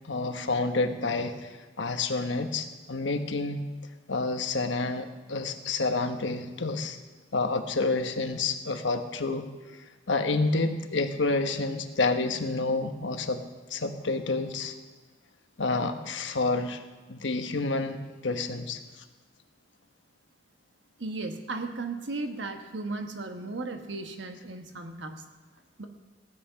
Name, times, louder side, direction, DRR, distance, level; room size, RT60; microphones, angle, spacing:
voice 1, 0.0-1.5 1.8-3.6 4.1-7.0 7.3-9.5 10.1-13.4 13.7-14.7 15.6-16.8 17.1-18.8, left 3 dB, 85° left, 7 dB, 1.1 m, -29 dB
voice 2, 21.0-25.2 25.8-25.9, right 3 dB, 80° right, 5 dB, 1.3 m, -35 dB
16.0 x 9.7 x 5.7 m, 1.3 s
head